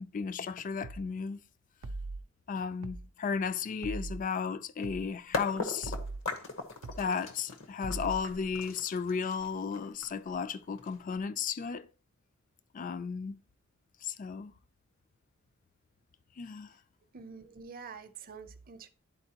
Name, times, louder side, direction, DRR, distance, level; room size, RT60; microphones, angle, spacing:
voice 1, 0.0-1.4 2.5-5.9 7.0-11.9 12.7-13.4 14.0-14.5 16.4-16.7, left 6 dB, 40° left, 0.4 m, -34 dB
sound 1, 0.8-1.1 1.8-2.2 2.8-3.1 3.8-4.2 4.8-5.1 5.8-6.2 6.8-7.1 7.8-8.2, right 2 dB, 85° right, 0.5 m, -39 dB
sound 2, 5.3-11.2, left 3 dB, 70° left, 1.0 m, -39 dB
voice 2, 17.1-18.9, right 5 dB, 45° right, 0.6 m, -47 dB
11.0 x 4.3 x 2.9 m
head